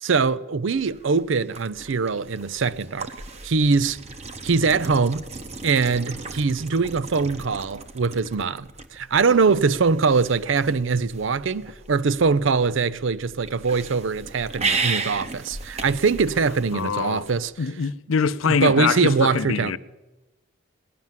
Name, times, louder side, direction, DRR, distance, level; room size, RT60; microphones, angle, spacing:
voice 1, 0.0-3.1 3.4-4.0 4.4-5.2 5.6-17.5 18.4-19.7, right 4 dB, 70° right, 0.5 m, -22 dB
sound 1, 0.7-17.5, right 4 dB, 30° right, 0.9 m, -35 dB
voice 2, 16.7-17.3 17.6-19.8, left 5 dB, 85° left, 0.5 m, -24 dB
18.0 x 11.0 x 7.4 m
head